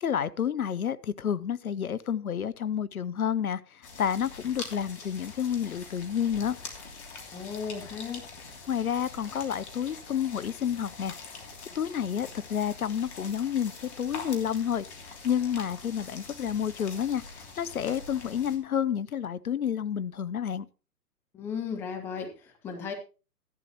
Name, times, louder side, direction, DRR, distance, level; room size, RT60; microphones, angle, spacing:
voice 1, 0.0-6.6 8.7-11.2 11.7-17.2 17.6-20.7, left 8 dB, 65° left, 0.7 m, -30 dB
sound 1, 3.8-18.6, left 4 dB, 45° left, 3.1 m, -44 dB
voice 2, 7.3-8.3 21.3-22.9, left 6 dB, 5° left, 0.7 m, -35 dB
14.5 x 11.0 x 3.0 m
figure-of-eight pair, 130°, 47 cm